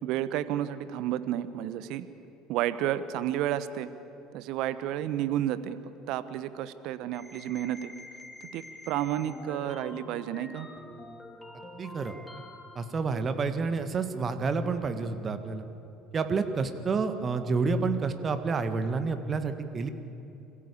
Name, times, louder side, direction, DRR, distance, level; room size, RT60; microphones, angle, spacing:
voice 1, 0.0-2.1 2.5-3.9 4.3-5.8 6.1-7.9 8.4-10.7, right 12 dB, 60° right, 14 dB, 0.9 m, -31 dB
sound 1, 7.1-13.0, left 2 dB, 15° left, 3.3 m, -46 dB
voice 2, 11.8-12.1 12.7-15.6 16.1-19.9, right 4 dB, 35° right, 9 dB, 1.7 m, -29 dB
26.0 x 15.0 x 8.4 m, 2.8 s
figure-of-eight pair, 65°, 0 cm